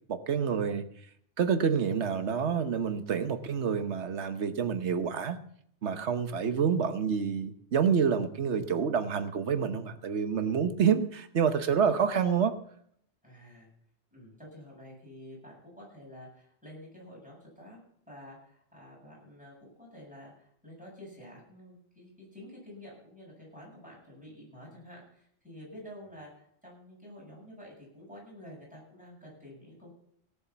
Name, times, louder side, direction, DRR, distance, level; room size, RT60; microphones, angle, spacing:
voice 1, 0.1-0.9 1.4-5.4 5.8-12.5, right 7 dB, 85° right, 10 dB, 1.3 m, -28 dB
voice 2, 13.2-13.7 14.1-17.8 18.1-29.9, equal, 5° right, -5 dB, 7.7 m, -49 dB
17.5 x 7.1 x 7.1 m, 0.67 s
omnidirectional pair, 1.1 m